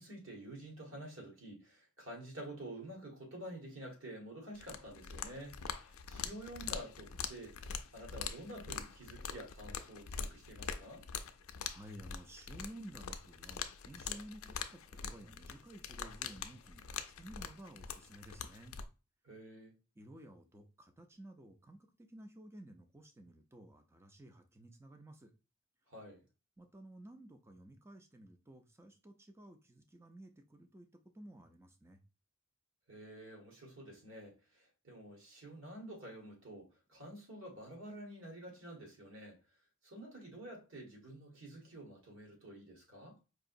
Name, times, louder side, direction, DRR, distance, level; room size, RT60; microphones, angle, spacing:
voice 1, 0.0-7.5 7.9-11.0 19.2-19.7 25.9-26.2 32.9-39.4 39.8-43.2, right 1 dB, 60° right, 1.6 m, -49 dB
sound 1, 4.5-18.9, left 7 dB, 75° left, 0.4 m, -44 dB
voice 2, 11.7-18.8 20.0-25.3 26.6-30.9 31.1-32.0, right 1 dB, 10° right, 0.4 m, -54 dB
4.7 x 2.9 x 2.6 m
head